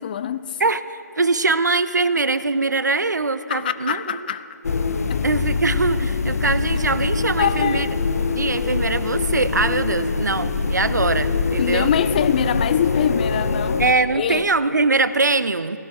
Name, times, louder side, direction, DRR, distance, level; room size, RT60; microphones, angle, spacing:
voice 1, 0.0-0.6 3.5-4.5 5.1-5.2 7.4-8.0 11.6-13.8 14.1-14.5, left 8 dB, 30° left, 14 dB, 0.4 m, -23 dB
voice 2, 0.6-4.0 5.2-7.9 8.3-11.9 13.8-15.8, right 3 dB, 80° right, 14 dB, 0.6 m, -22 dB
sound 1, 4.6-13.9, left 4 dB, 60° left, 0.7 m, -23 dB
17.0 x 12.0 x 4.7 m, 2.7 s
figure-of-eight pair, 145°, 9 cm